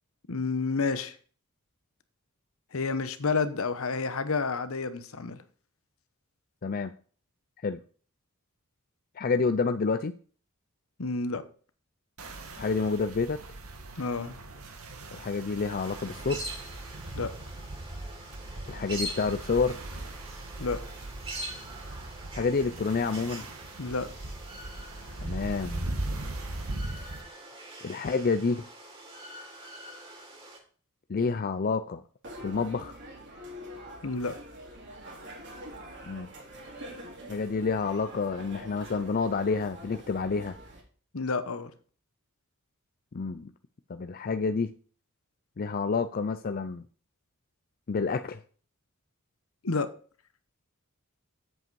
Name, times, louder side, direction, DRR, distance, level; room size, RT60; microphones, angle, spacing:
voice 1, 0.3-1.2 2.7-5.4 11.0-11.4 14.0-14.3 17.1-17.3 20.6-20.8 23.8-24.1 34.0-34.3 41.1-41.7 49.6-49.9, left 4 dB, 70° left, 1.0 m, -30 dB
voice 2, 6.6-6.9 7.6-7.8 9.2-10.1 12.6-13.4 15.1-16.4 18.7-19.8 22.3-23.4 25.2-25.9 27.0-27.2 27.8-28.6 31.1-32.0 32.4-33.0 36.1-36.3 37.3-40.6 43.1-43.5 43.9-44.7 45.6-46.8 47.9-48.4, left 4 dB, 45° left, 0.5 m, -29 dB
sound 1, 12.2-27.2, right 2 dB, 80° right, 1.8 m, -39 dB
sound 2, 15.8-30.6, right 1 dB, 25° right, 2.8 m, -44 dB
sound 3, 32.2-40.8, equal, 55° right, 4.1 m, -45 dB
7.8 x 7.8 x 4.7 m
head